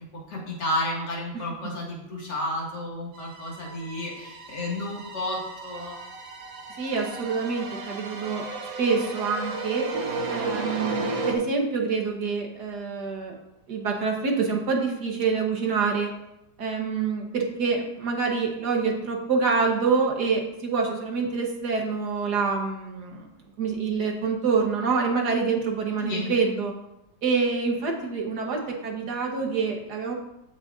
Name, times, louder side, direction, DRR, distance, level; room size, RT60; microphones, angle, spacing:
voice 1, 0.1-6.0 26.0-26.3, left 1 dB, 65° left, -4 dB, 2.8 m, -32 dB
sound 1, 3.1-11.3, right 3 dB, 85° right, 1.9 m, -34 dB
voice 2, 6.8-8.5 8.8-9.9 10.3-13.3 13.7-16.1 16.6-23.3 23.6-26.7 27.2-30.1, right 5 dB, 65° right, 1 dB, 1.8 m, -26 dB
14.5 x 6.3 x 2.6 m, 0.85 s
omnidirectional pair, 2.0 m